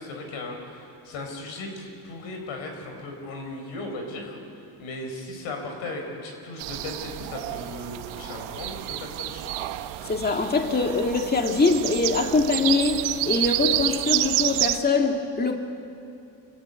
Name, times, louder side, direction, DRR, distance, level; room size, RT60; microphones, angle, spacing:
voice 1, 0.0-9.7, left 2 dB, 80° left, 4.9 m, -37 dB
sound 1, 6.6-14.8, right 15 dB, 80° right, 1.0 m, -29 dB
voice 2, 10.0-15.6, left 3 dB, 20° left, 1.9 m, -23 dB
26.0 x 15.5 x 9.2 m
supercardioid pair, 70°, 48 cm